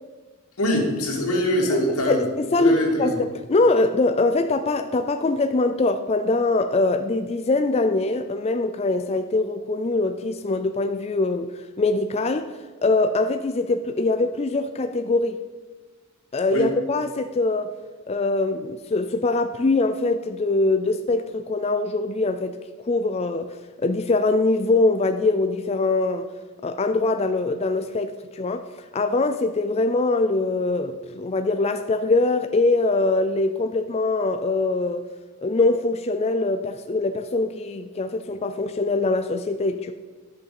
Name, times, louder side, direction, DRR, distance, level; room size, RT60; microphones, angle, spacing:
voice 1, 0.6-2.2 2.6-3.2 16.5-16.7, equal, 90° left, 2.7 m, -23 dB
voice 2, 2.1-15.4 16.3-17.7 18.1-22.5 22.9-26.3 26.6-28.7 28.9-35.1 35.4-39.9, left 2 dB, 30° left, 0.4 m, -23 dB
11.0 x 6.6 x 6.9 m
head